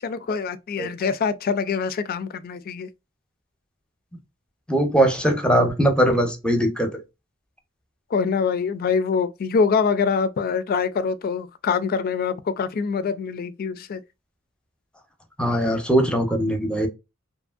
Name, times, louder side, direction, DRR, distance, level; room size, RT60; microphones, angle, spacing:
voice 1, 0.0-2.9 8.1-14.0, left 5 dB, 45° left, 0.3 m, -24 dB
voice 2, 4.7-6.9 15.4-16.9, right 1 dB, 5° left, 0.6 m, -20 dB
2.7 x 2.6 x 2.3 m
head